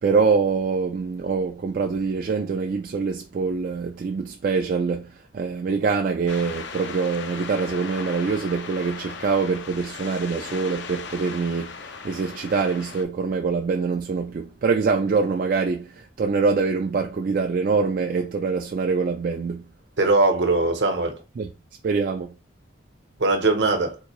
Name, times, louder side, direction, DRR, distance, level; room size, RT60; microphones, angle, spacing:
voice 1, 0.0-19.7 21.4-21.5 21.8-22.3, right 4 dB, 50° right, 0.3 m, -24 dB
sound 1, 6.3-13.0, left 5 dB, 70° left, 0.5 m, -37 dB
voice 2, 20.0-21.2 23.2-24.0, right 2 dB, 65° right, 0.8 m, -20 dB
3.7 x 2.6 x 2.9 m
head